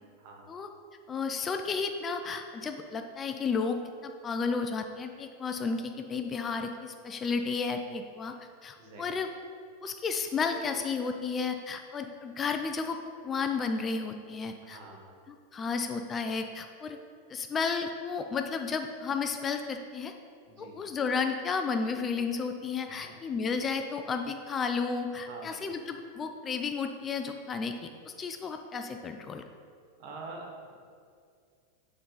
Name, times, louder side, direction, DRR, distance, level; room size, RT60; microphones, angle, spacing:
voice 1, 0.2-0.5 8.8-9.1 14.6-15.1 20.5-20.8 22.9-23.2 25.3-25.7 30.0-30.7, right 3 dB, 55° right, 0 dB, 1.2 m, -46 dB
voice 2, 1.1-8.3 8.6-9.3 9.8-13.0 13.2-14.8 15.5-17.0 17.3-20.1 20.6-29.4, left 5 dB, 20° left, 6 dB, 0.3 m, -32 dB
6.9 x 3.8 x 3.9 m, 2.2 s
supercardioid pair, 135°, 0 cm